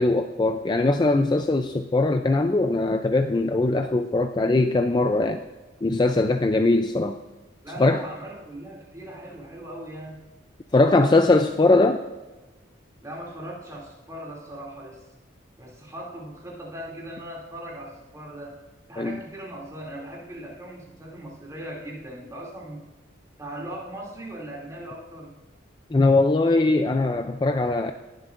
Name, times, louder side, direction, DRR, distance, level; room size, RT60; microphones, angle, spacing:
voice 1, 0.0-5.4 5.8-7.2 7.8-8.0 10.7-12.0 19.0-19.2 25.9-27.9, left 2 dB, 20° left, 7 dB, 0.3 m, -21 dB
voice 2, 7.6-10.3 10.8-11.3 13.0-15.0 15.6-18.6 18.9-22.9 23.4-25.3, right 1 dB, 15° right, -3 dB, 2.6 m, -39 dB
20.5 x 7.8 x 2.5 m, 1.2 s
head